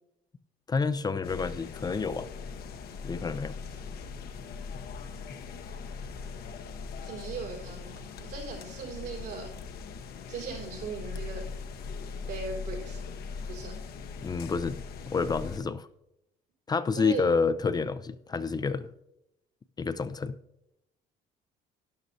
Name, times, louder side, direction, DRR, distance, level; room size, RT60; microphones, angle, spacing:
voice 1, 0.7-2.3 3.0-3.6 14.2-14.8 15.1-15.9 16.7-18.9 19.8-20.4, left 4 dB, 25° left, 13 dB, 0.4 m, -29 dB
sound 1, 1.2-15.6, left 5 dB, 65° left, 0.9 m, -40 dB
voice 2, 7.0-9.6 10.3-11.5 12.3-13.0 13.4-13.7 17.0-17.3, right 4 dB, 85° right, -1 dB, 4.3 m, -38 dB
12.0 x 10.5 x 2.7 m, 0.84 s
cardioid pair, 110°, 17 cm